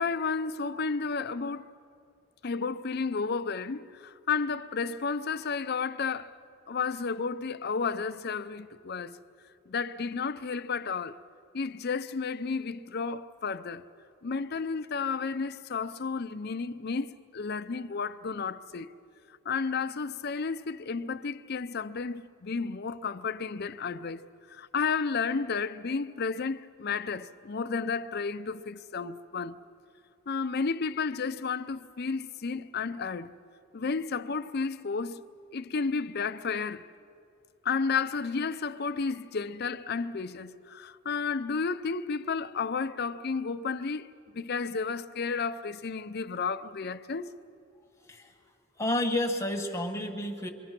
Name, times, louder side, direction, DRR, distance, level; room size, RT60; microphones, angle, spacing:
voice 1, 0.0-1.7 2.4-6.3 6.7-9.2 9.7-11.2 11.5-13.8 14.2-18.9 19.4-29.6 30.3-33.3 33.7-35.2 35.5-36.9 37.6-44.1 44.3-47.3, left 5 dB, 50° left, 0.5 m, -32 dB
voice 2, 48.8-50.5, left 1 dB, 15° left, 1.5 m, -30 dB
27.0 x 23.5 x 6.0 m
head